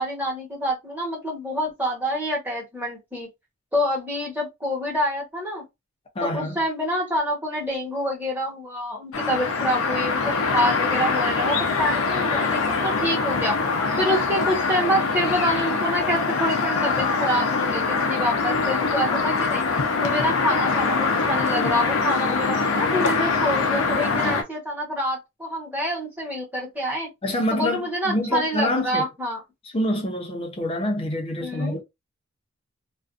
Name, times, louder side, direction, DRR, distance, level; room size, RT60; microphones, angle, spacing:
voice 1, 0.0-3.3 3.7-5.6 6.2-13.6 14.0-19.6 20.0-27.1 27.5-29.4 31.4-31.8, equal, 10° right, 1.1 m, -27 dB
voice 2, 6.2-6.6 27.2-29.0 29.6-31.8, left 1 dB, 25° left, 0.5 m, -26 dB
sound 1, 9.1-24.4, left 4 dB, 85° left, 0.6 m, -23 dB
2.5 x 2.2 x 2.5 m
head